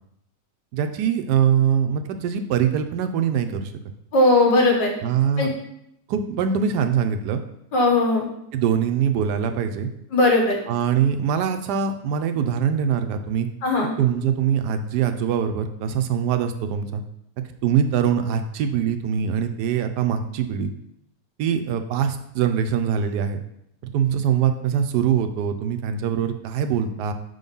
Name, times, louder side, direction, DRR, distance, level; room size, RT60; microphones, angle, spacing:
voice 1, 0.7-3.7 5.0-5.5 6.1-7.4 8.5-9.9 10.7-13.5 14.0-17.0 17.6-20.7 21.4-23.4 23.9-27.1, right 8 dB, 75° right, 7 dB, 1.2 m, -23 dB
voice 2, 4.1-4.9 5.4-5.5 7.7-8.3 10.1-10.6 13.6-13.9, left 2 dB, 85° left, 0 dB, 2.1 m, -18 dB
5.7 x 3.9 x 5.3 m, 0.79 s
omnidirectional pair, 1.8 m